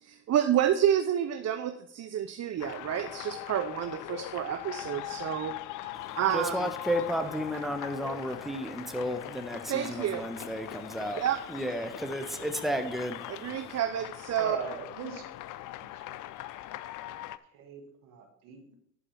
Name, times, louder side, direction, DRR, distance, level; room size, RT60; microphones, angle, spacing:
voice 1, 0.0-6.7 9.7-10.3 11.2-11.4 13.3-14.6, right 10 dB, 55° right, 10 dB, 0.7 m, -29 dB
sound 1, 2.6-17.4, left 15 dB, 75° left, 0.5 m, -41 dB
voice 2, 5.9-11.2 11.5-13.8, equal, ahead, 7 dB, 1.3 m, -33 dB
voice 3, 14.4-15.2 15.8-16.2 17.5-18.8, right 6 dB, 85° right, 3 dB, 1.9 m, -40 dB
11.0 x 4.8 x 5.8 m, 0.72 s
supercardioid pair, 65°, 31 cm